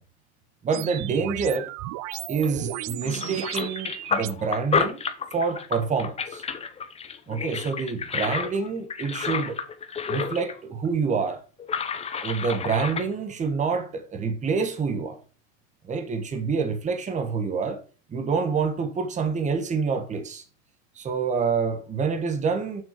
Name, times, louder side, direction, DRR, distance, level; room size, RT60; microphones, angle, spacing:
voice 1, 0.6-1.7 2.3-5.0 5.3-6.4 7.3-9.6 10.1-11.4 12.2-15.2 15.8-17.8 18.1-20.4 20.9-22.8, right 5 dB, 20° right, 1.4 m, -27 dB
sound 1, 0.7-4.3, right 17 dB, 45° right, 0.6 m, -34 dB
sound 2, 2.4-2.7 3.0-10.6 10.9-11.0 11.6-13.1, left 6 dB, 15° left, 0.9 m, -30 dB
7.3 x 6.1 x 6.6 m
supercardioid pair, 145°, 38 cm